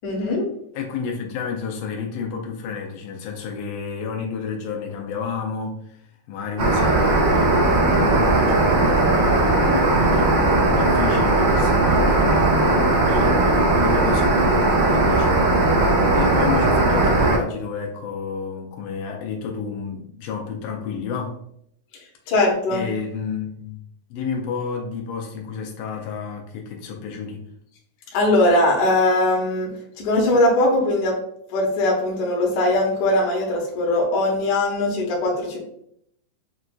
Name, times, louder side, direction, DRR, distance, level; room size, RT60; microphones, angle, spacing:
voice 1, 0.0-0.5 22.3-22.9 28.1-29.7 30.0-31.2 31.5-35.6, left 1 dB, 70° left, -2 dB, 2.3 m, -20 dB
voice 2, 0.7-6.0 6.3-15.5 16.1-21.4 22.7-23.8 24.1-27.4, left 6 dB, 90° left, 0 dB, 2.3 m, -30 dB
sound 1, 6.6-17.4, right 2 dB, 70° right, 1.1 m, -18 dB
7.1 x 2.5 x 2.2 m, 0.71 s
omnidirectional pair, 3.7 m